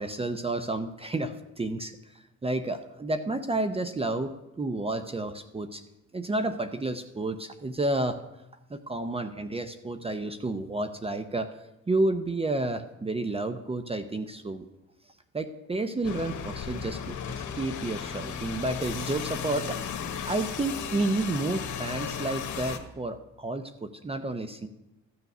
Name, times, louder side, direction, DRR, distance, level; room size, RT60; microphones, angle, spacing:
voice 1, 0.0-5.8 6.1-8.2 8.7-11.6 11.9-14.7 15.3-19.8 20.2-24.7, right 2 dB, 20° right, 9 dB, 0.7 m, -31 dB
sound 1, 16.0-22.8, left 7 dB, 70° left, 1.3 m, -35 dB
14.0 x 6.8 x 6.0 m, 0.93 s
cardioid pair, 90°, 30 cm